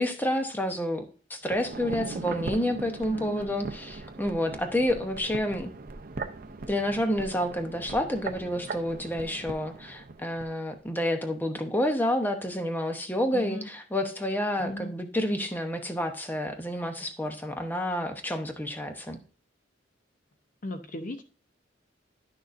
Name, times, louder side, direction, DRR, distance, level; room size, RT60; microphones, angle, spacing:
voice 1, 0.0-5.7 6.7-19.2, left 1 dB, 10° left, 5 dB, 0.8 m, -29 dB
sound 1, 1.4-10.5 10.8-10.9, right 3 dB, 50° right, 0.6 m, -39 dB
voice 2, 3.1-3.6 13.3-13.7 14.6-14.9 20.6-21.2, left 1 dB, 45° left, 7 dB, 0.7 m, -37 dB
11.0 x 6.4 x 2.6 m, 0.38 s
head